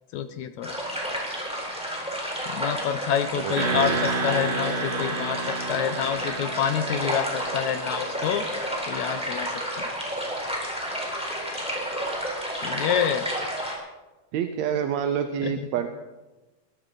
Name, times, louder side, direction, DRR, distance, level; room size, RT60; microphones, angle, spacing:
voice 1, 0.1-0.8 2.5-8.5 8.9-10.0 12.6-13.3 15.4-15.5, left 9 dB, 75° left, 10 dB, 1.8 m, -28 dB
sound 1, 0.6-13.7, equal, ahead, 3.7 m, -31 dB
voice 2, 3.4-4.1 14.3-15.9, right 9 dB, 70° right, 7 dB, 1.8 m, -28 dB
sound 2, 3.6-8.5, right 3 dB, 35° right, 1.4 m, -31 dB
21.5 x 13.5 x 4.0 m, 1.1 s
omnidirectional pair, 3.7 m